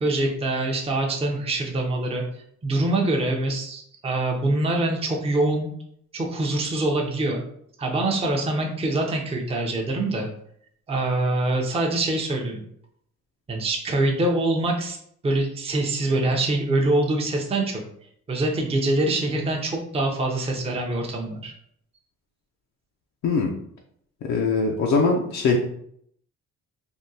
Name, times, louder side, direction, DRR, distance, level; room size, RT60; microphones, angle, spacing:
voice 1, 0.0-2.2 2.6-5.7 6.1-7.4 7.8-10.3 10.9-12.6 13.5-15.0 15.2-17.8 18.3-21.5, right 2 dB, 20° right, 1 dB, 0.6 m, -24 dB
voice 2, 24.3-25.6, left 4 dB, 70° left, 0 dB, 0.5 m, -21 dB
3.6 x 2.2 x 2.6 m, 0.67 s
cardioid pair, 90°, 30 cm